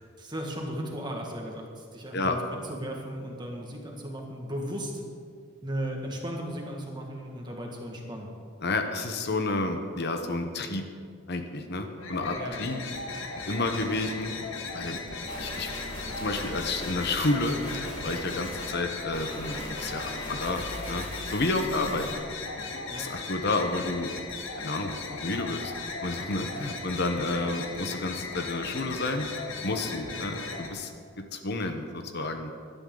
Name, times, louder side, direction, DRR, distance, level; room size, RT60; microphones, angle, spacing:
voice 1, 0.2-4.9 5.6-8.3 12.4-12.6 21.7-21.9 22.9-23.1 30.0-30.3, equal, 20° right, 0 dB, 2.0 m, -36 dB
voice 2, 8.6-10.9 11.3-12.8 13.5-14.3 14.7-15.0 15.4-15.7 16.2-22.0 22.8-24.1 24.6-25.7 26.0-29.3 29.6-30.9 31.2-32.5, left 2 dB, 55° left, 6 dB, 1.0 m, -30 dB
sound 1, 12.0-30.7, left 4 dB, 70° left, 1.8 m, -37 dB
sound 2, 15.3-18.7 19.1-22.1, equal, 25° left, 2.9 m, -39 dB
18.0 x 12.0 x 3.9 m, 2.2 s
head